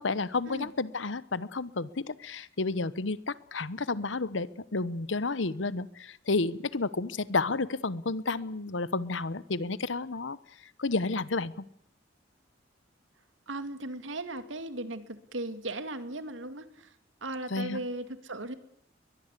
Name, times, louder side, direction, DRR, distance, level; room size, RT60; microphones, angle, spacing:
voice 1, 0.0-10.4 10.8-11.6 17.5-17.8, left 3 dB, 80° left, 18 dB, 1.0 m, -31 dB
voice 2, 13.5-17.0 17.2-18.5, right 2 dB, 85° right, 10 dB, 2.3 m, -37 dB
22.0 x 21.5 x 8.3 m, 0.69 s
head